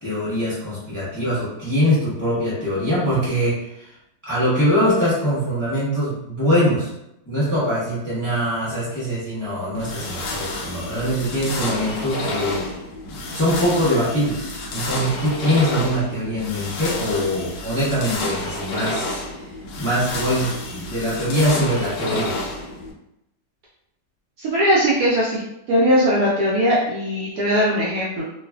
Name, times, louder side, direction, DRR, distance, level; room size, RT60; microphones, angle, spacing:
voice 1, 0.0-3.9 4.2-6.9 7.3-12.7 13.1-19.2 19.8-22.4, equal, 20° left, -9 dB, 0.5 m, -23 dB
sound 1, 9.7-22.9, left 2 dB, 75° left, 1.2 m, -30 dB
voice 2, 24.4-25.4 25.7-28.2, equal, 70° right, -6 dB, 0.9 m, -19 dB
3.1 x 2.4 x 2.3 m, 0.84 s
omnidirectional pair, 2.0 m